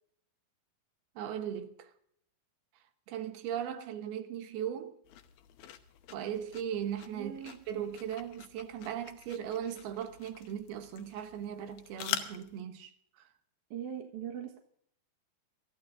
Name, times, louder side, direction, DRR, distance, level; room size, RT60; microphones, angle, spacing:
voice 1, 1.2-1.9 3.1-5.0 6.1-13.3, right 9 dB, 90° right, 3.1 m, -38 dB
sound 1, 5.1-12.6, left 11 dB, 80° left, 2.8 m, -44 dB
voice 2, 7.1-7.6 13.7-14.6, right 9 dB, 60° right, 2.5 m, -40 dB
24.5 x 13.0 x 2.6 m
omnidirectional pair, 4.3 m